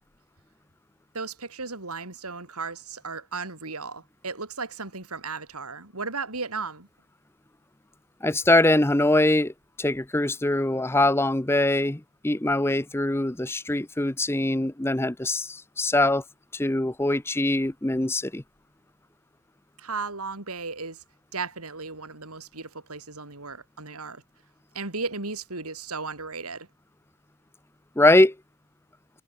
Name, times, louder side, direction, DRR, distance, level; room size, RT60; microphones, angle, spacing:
voice 1, 1.1-6.9 19.8-21.0 21.3-24.2 24.7-26.7, right 4 dB, 85° right, 4.9 m, -35 dB
voice 2, 8.2-9.5 9.8-16.2 16.5-18.4 28.0-28.3, left 1 dB, 10° left, 0.6 m, -22 dB
head